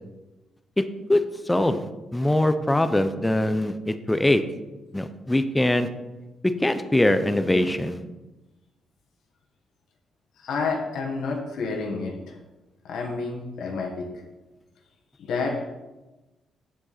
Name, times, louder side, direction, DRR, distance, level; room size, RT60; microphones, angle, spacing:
voice 1, 1.1-4.4 4.9-5.9 6.6-8.0, left 1 dB, 10° left, 10 dB, 0.6 m, -22 dB
voice 2, 10.4-12.4 12.8-14.2 15.2-15.7, left 4 dB, 75° left, 1 dB, 1.5 m, -29 dB
9.1 x 7.5 x 4.2 m, 1.1 s
cardioid pair, 150°, 0 cm